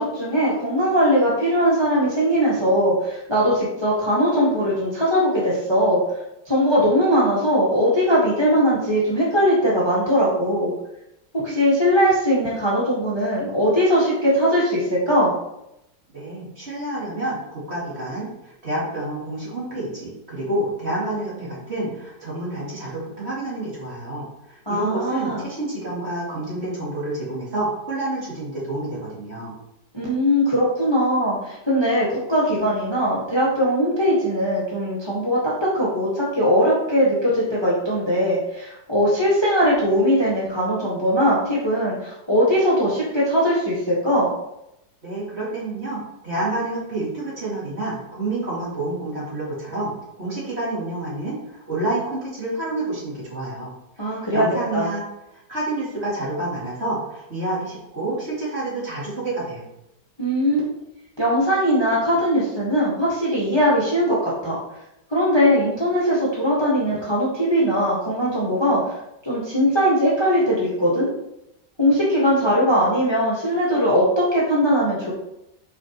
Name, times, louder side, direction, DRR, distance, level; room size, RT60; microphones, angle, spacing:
voice 1, 0.0-6.0 6.4-10.7 11.3-15.3 24.7-25.4 29.9-44.3 54.0-54.5 54.7-54.9 60.2-60.6 61.2-64.6 65.1-68.8 69.2-71.1 71.8-75.1, equal, 15° left, -7 dB, 1.5 m, -20 dB
voice 2, 16.1-29.5 45.0-49.9 50.2-53.7 54.0-55.0 55.3-59.7, right 2 dB, 35° right, -7 dB, 2.6 m, -28 dB
8.6 x 4.5 x 3.0 m, 0.85 s
omnidirectional pair, 1.8 m